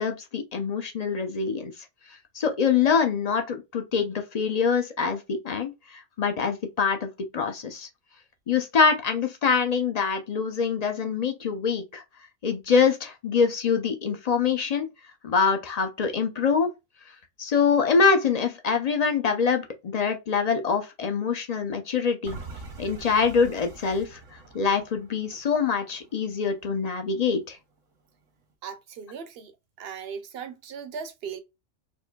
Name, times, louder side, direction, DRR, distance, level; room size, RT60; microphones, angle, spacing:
voice 1, 0.0-1.7 2.3-7.9 8.5-12.0 12.4-14.9 15.2-16.7 17.4-22.4 22.8-24.2 24.5-27.6, left 5 dB, 40° left, 0.6 m, -24 dB
sound 1, 22.2-27.3 27.8-27.9, right 3 dB, 80° right, 1.4 m, -44 dB
voice 2, 28.6-29.5 29.8-31.4, right 6 dB, 60° right, 0.8 m, -38 dB
4.4 x 2.6 x 2.2 m
omnidirectional pair, 1.3 m